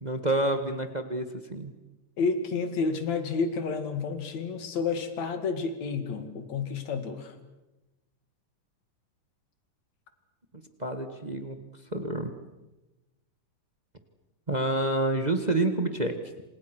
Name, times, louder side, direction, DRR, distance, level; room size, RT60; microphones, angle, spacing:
voice 1, 0.0-1.2 1.5-1.7 10.8-11.6 11.9-12.3 14.5-16.2, right 2 dB, 30° right, 7 dB, 0.7 m, -28 dB
voice 2, 2.2-7.3, left 4 dB, 55° left, 8 dB, 3.3 m, -30 dB
28.0 x 27.5 x 6.3 m, 1.1 s
omnidirectional pair, 3.9 m